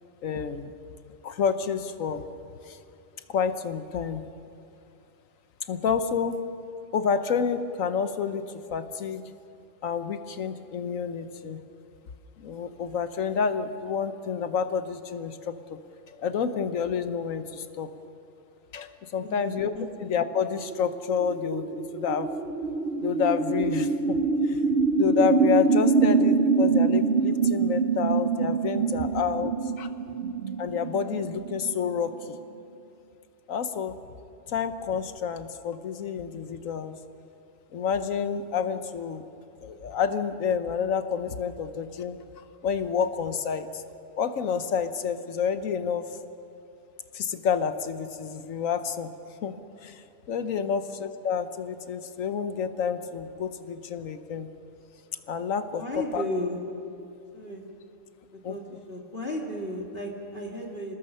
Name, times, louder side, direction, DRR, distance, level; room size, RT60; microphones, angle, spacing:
voice 1, 0.2-0.7 1.2-2.2 2.7-2.8 3.3-4.2 5.7-6.4 6.9-9.2 9.8-11.6 12.4-15.8 16.1-17.9 18.7-19.7 20.0-22.3 23.0-24.2 24.4-24.6 25.0-29.5 29.8-29.9 30.6-32.3 33.5-34.0 34.5-36.9 37.7-39.2 39.6-42.2 42.6-43.8 44.2-46.1 47.1-49.1 49.4-49.5 49.8-54.5 55.3-55.8 56.1-56.2 58.4-58.5, left 7 dB, 80° left, 10 dB, 1.3 m, -29 dB
voice 2, 19.2-19.5 19.8-19.9 50.6-50.8 55.7-56.6 57.3-57.6 58.5-58.6 58.9-60.9, left 1 dB, 45° left, -1 dB, 2.2 m, -34 dB
sound 1, 20.3-32.4, right 4 dB, 60° right, 1.0 m, -25 dB
27.0 x 19.5 x 5.6 m, 2.7 s
omnidirectional pair, 1.4 m